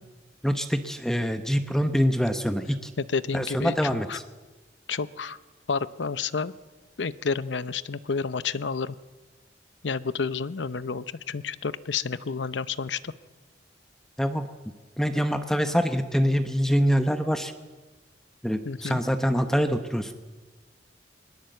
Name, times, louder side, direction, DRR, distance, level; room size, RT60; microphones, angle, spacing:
voice 1, 0.4-2.9 3.3-4.2 14.2-14.5 15.0-17.5 18.4-20.1, equal, 5° left, 8 dB, 0.9 m, -25 dB
voice 2, 3.0-3.8 4.1-4.2 4.9-5.4 5.7-6.5 7.0-9.0 9.8-13.1 18.6-19.0, left 5 dB, 75° left, 15 dB, 0.7 m, -30 dB
21.5 x 20.0 x 7.9 m, 1.3 s
head